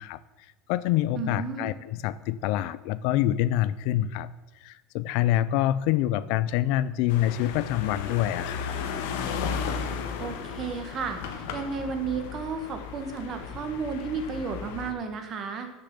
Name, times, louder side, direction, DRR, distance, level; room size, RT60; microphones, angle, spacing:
voice 1, 0.0-4.3 4.6-8.7, left 13 dB, 60° left, 16 dB, 0.4 m, -26 dB
voice 2, 1.1-1.7 10.2-15.7, right 5 dB, 30° right, 6 dB, 1.4 m, -33 dB
sound 1, 7.1-14.9, left 6 dB, 80° left, 1.4 m, -35 dB
10.0 x 6.7 x 7.5 m, 1.2 s
cardioid pair, 175°, 0 cm